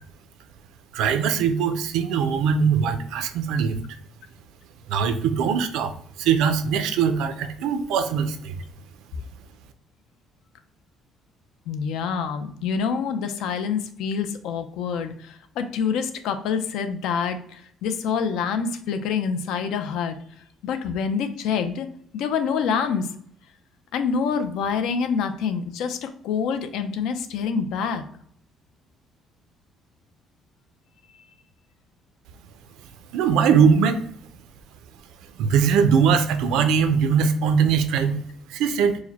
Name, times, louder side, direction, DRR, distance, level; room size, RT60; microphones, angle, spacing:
voice 1, 0.9-3.8 4.9-5.9 6.2-8.6 33.1-34.0 35.4-38.2 38.5-39.0, right 6 dB, 90° right, 9 dB, 0.5 m, -21 dB
voice 2, 11.7-20.2 20.6-21.9 22.1-23.1 23.9-28.1, left 6 dB, 75° left, 8 dB, 0.5 m, -26 dB
4.7 x 2.1 x 4.1 m, 0.64 s
cardioid pair, 170°, 0 cm